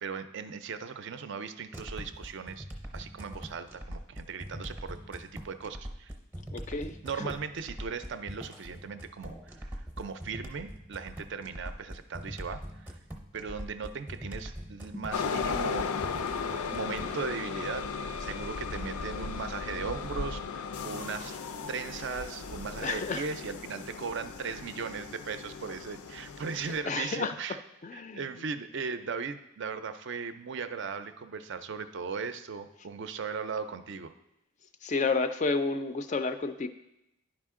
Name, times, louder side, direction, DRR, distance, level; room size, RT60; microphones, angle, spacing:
voice 1, 0.0-2.7 2.9-6.1 7.0-13.0 13.3-16.0 16.7-17.9 18.2-21.4 21.7-27.6 27.9-34.1, right 5 dB, 55° right, 10 dB, 0.4 m, -38 dB
sound 1, 1.7-17.2, equal, 10° right, 0.6 m, -42 dB
voice 2, 6.5-7.3 22.8-23.2 26.9-27.3 27.8-28.2 34.8-36.7, left 4 dB, 35° left, 10 dB, 0.3 m, -31 dB
sound 2, 15.1-26.8, left 5 dB, 90° left, 0.5 m, -36 dB
10.0 x 5.0 x 3.6 m, 0.86 s
head